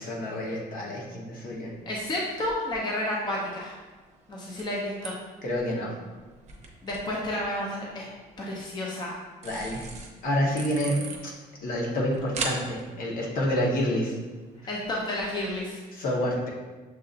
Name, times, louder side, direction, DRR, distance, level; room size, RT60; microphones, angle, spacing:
voice 1, 0.0-1.7 5.4-5.9 9.4-9.9 10.2-11.3 11.6-14.1 15.9-16.5, equal, 60° left, -3 dB, 1.2 m, -28 dB
sound 1, 1.5-15.6, right 4 dB, 40° right, 0.7 m, -43 dB
voice 2, 1.9-3.7 4.3-5.2 6.8-8.1 8.4-9.2 14.7-15.8, left 1 dB, 25° left, -3 dB, 0.7 m, -31 dB
6.6 x 2.7 x 2.5 m, 1.3 s
cardioid pair, 110°, 17 cm